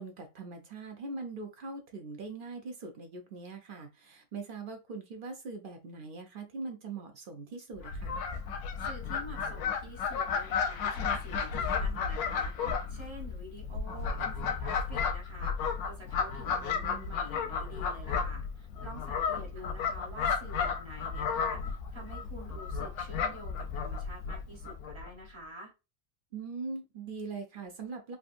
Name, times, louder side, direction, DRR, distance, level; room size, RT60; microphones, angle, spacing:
voice 1, 0.0-8.2 16.5-17.1 19.6-19.8 26.3-28.2, right 4 dB, 65° right, 0.5 m, -42 dB
Fowl, 7.8-25.1, left 6 dB, 90° left, 1.1 m, -33 dB
voice 2, 8.8-25.7, equal, 25° right, 0.8 m, -48 dB
3.5 x 2.6 x 2.4 m
omnidirectional pair, 1.5 m